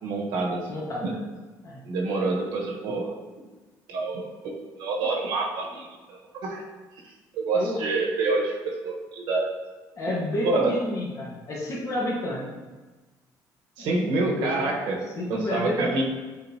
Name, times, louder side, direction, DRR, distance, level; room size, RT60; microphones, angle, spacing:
voice 1, 0.0-0.7 1.0-1.1 1.8-3.1 3.9-6.6 7.0-9.5 10.4-10.8 13.8-15.0 15.3-16.0, right 3 dB, 80° right, -1 dB, 1.4 m, -27 dB
voice 2, 0.7-1.2 1.6-1.8 7.5-7.8 9.9-12.4 13.8-14.7 15.1-16.0, left 1 dB, 45° left, -4 dB, 1.7 m, -30 dB
8.6 x 4.1 x 2.9 m, 1.2 s
cardioid pair, 135°, 7 cm